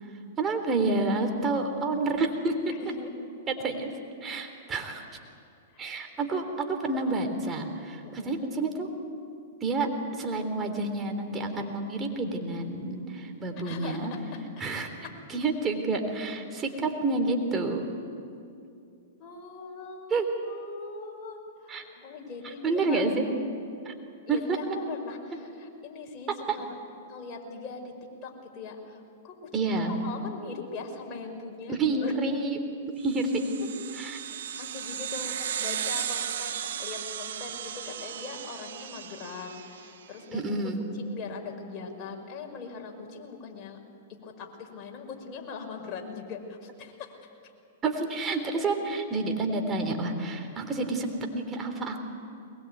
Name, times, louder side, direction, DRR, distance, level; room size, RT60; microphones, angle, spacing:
voice 1, 0.4-2.9 3.5-3.9 4.2-5.0 5.8-8.9 9.6-9.9 10.2-14.1 14.6-14.9 15.3-17.9 20.1-20.2 21.7-21.8 22.6-23.3 23.8-23.9 24.3-24.6 26.5-26.6 29.5-30.0 31.7-32.6 33.0-33.5 34.0-34.2 40.3-40.8 47.8-52.0, right 3 dB, 20° right, 5 dB, 3.5 m, -29 dB
voice 2, 2.7-3.1 8.0-8.4 13.6-14.4 19.2-23.0 24.3-26.7 27.1-27.9 28.2-32.1 33.9-34.1 34.6-40.5 40.9-43.8 44.2-47.1, left 4 dB, 35° left, 1 dB, 5.3 m, -41 dB
sound 1, 33.1-40.0, right 9 dB, 70° right, 1.2 m, -35 dB
22.0 x 21.0 x 9.4 m, 2.5 s
hypercardioid pair, 115°, 0 cm